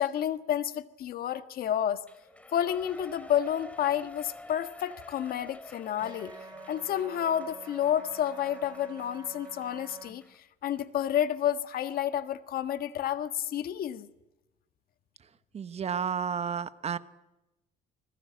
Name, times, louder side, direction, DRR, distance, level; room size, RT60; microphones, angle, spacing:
voice 1, 0.0-2.0 2.5-6.3 6.7-10.2 10.6-14.1, left 10 dB, 60° left, 10 dB, 1.6 m, -30 dB
Shout / Cheering, 2.0-10.4 10.8-10.9, left 1 dB, 10° left, 2.9 m, -49 dB
sound 1, 6.0-10.1, right 4 dB, 20° right, 4.1 m, -47 dB
voice 2, 15.5-17.0, right 7 dB, 40° right, 13 dB, 1.2 m, -31 dB
25.0 x 20.5 x 8.8 m, 0.95 s
cardioid pair, 110°, 17 cm